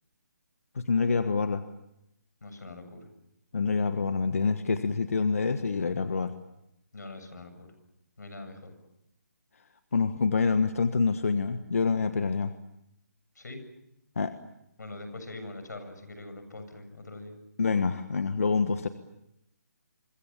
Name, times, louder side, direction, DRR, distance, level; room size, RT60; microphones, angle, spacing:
voice 1, 0.7-1.6 3.5-6.3 9.9-12.5 14.2-14.3 17.6-18.9, left 4 dB, 55° left, 9 dB, 1.4 m, -26 dB
voice 2, 2.4-3.1 6.9-7.7 8.2-8.8 13.4-13.6 14.8-17.4, left 2 dB, 90° left, 9 dB, 7.5 m, -43 dB
27.0 x 25.0 x 7.3 m, 0.82 s
hypercardioid pair, 180°, 9 cm